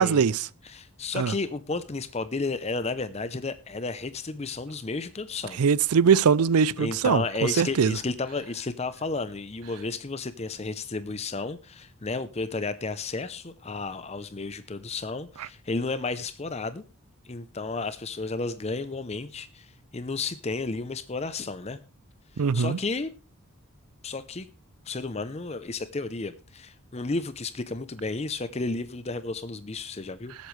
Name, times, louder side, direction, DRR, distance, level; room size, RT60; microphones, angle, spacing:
voice 1, 0.0-0.5 1.2-1.3 5.6-7.2 7.6-8.0 22.4-22.8, right 6 dB, 90° right, 0.5 m, -21 dB
voice 2, 0.6-5.6 6.8-16.8 17.2-21.8 22.5-23.1 24.0-24.5 24.9-30.4, left 3 dB, 30° left, 0.6 m, -32 dB
20.0 x 8.3 x 3.2 m
head